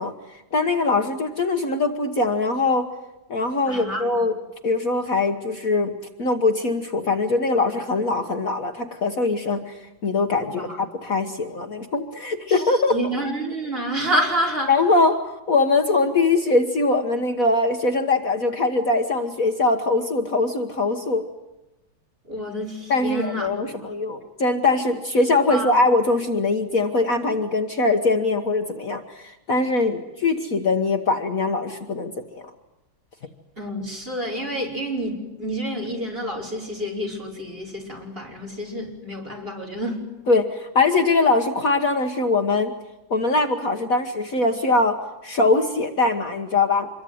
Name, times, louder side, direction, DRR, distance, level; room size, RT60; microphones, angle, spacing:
voice 1, 0.0-2.9 3.3-4.3 4.6-5.9 6.2-13.0 14.7-15.2 15.5-21.2 22.9-32.5 40.3-42.8 43.1-45.0 45.2-46.9, left 3 dB, 50° left, 6 dB, 1.7 m, -22 dB
voice 2, 3.7-4.2 10.4-10.8 12.5-14.7 22.3-23.9 25.5-25.7 33.6-40.1, equal, 30° right, -1 dB, 5.5 m, -28 dB
26.5 x 23.0 x 9.4 m, 1.0 s
omnidirectional pair, 2.0 m